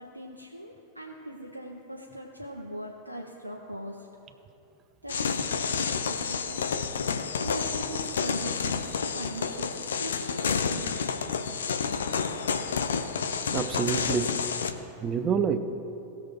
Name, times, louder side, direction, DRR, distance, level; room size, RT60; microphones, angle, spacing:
voice 1, 0.0-4.1 5.0-6.8 7.4-11.1, right 1 dB, 85° right, -1 dB, 0.7 m, -40 dB
sound 1, 5.1-14.7, left 6 dB, 65° left, 0.6 m, -30 dB
voice 2, 13.2-14.4 15.0-15.6, right 6 dB, 25° right, 9 dB, 0.7 m, -28 dB
18.5 x 6.3 x 3.1 m, 2.9 s
figure-of-eight pair, 90°, 0 cm